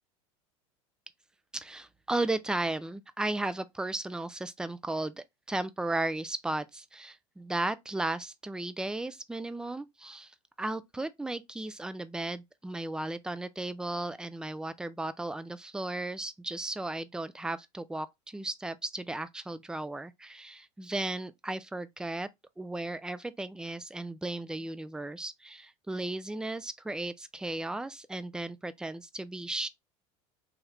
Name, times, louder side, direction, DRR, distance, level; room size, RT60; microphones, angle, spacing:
voice 1, 1.5-10.3 10.6-22.3 22.6-29.7, right 2 dB, 5° right, 0.3 m, -35 dB
3.0 x 2.4 x 3.3 m
supercardioid pair, 100°, 16 cm